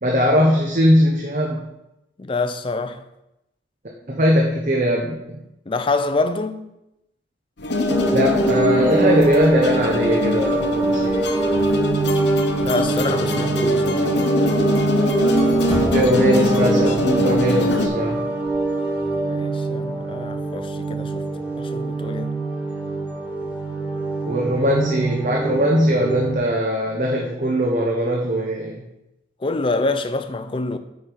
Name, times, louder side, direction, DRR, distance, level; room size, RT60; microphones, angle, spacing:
voice 1, 0.0-1.7 4.1-5.2 8.1-11.2 15.8-18.3 24.2-28.8, equal, 40° right, 0.9 m, -20 dB
voice 2, 2.2-3.0 5.7-6.7 12.6-14.3 19.3-21.2 21.6-22.4 29.4-30.8, left 3 dB, 25° left, 0.4 m, -26 dB
sound 1, 7.6-17.9, left 2 dB, 60° left, 0.8 m, -23 dB
sound 2, 7.9-26.4, right 3 dB, 10° right, 1.0 m, -23 dB
Knock, 15.7-16.6, equal, 25° right, 1.7 m, -30 dB
8.5 x 5.2 x 4.6 m
head